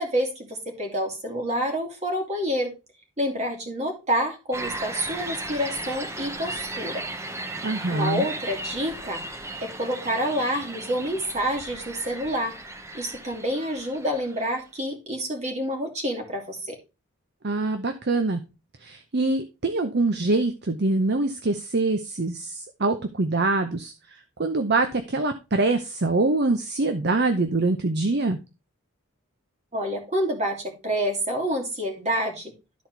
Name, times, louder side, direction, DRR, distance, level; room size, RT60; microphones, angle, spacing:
voice 1, 0.0-2.7 3.2-7.0 7.9-9.2 9.6-12.5 12.9-16.8 29.7-32.5, equal, 30° right, 2 dB, 2.5 m, -28 dB
sound 1, 4.5-14.6, right 2 dB, 10° right, 0.7 m, -36 dB
voice 2, 7.6-8.3 17.4-18.4 18.8-28.4, right 2 dB, 45° right, 8 dB, 0.7 m, -24 dB
12.0 x 4.2 x 4.5 m, 0.28 s
head